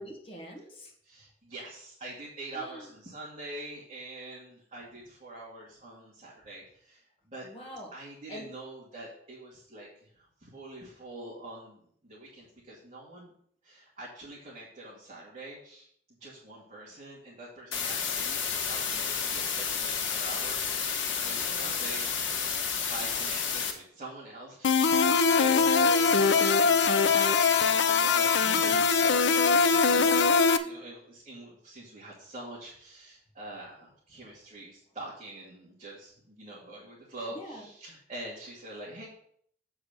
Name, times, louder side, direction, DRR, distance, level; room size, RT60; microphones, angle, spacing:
voice 1, 0.0-0.9 2.5-2.9 7.4-7.9 8.3-8.5 21.3-21.7 29.9-30.3 37.3-37.6, equal, 30° left, 0 dB, 1.9 m, -44 dB
voice 2, 1.0-7.5 7.9-13.3 13.6-15.9 16.2-22.1 22.9-39.1, right 2 dB, 35° right, -7 dB, 2.3 m, -45 dB
sound 1, 17.7-23.7, left 6 dB, 90° left, 1.3 m, -31 dB
sound 2, 24.6-30.6, left 5 dB, 70° left, 0.6 m, -22 dB
7.5 x 4.8 x 6.6 m, 0.64 s
head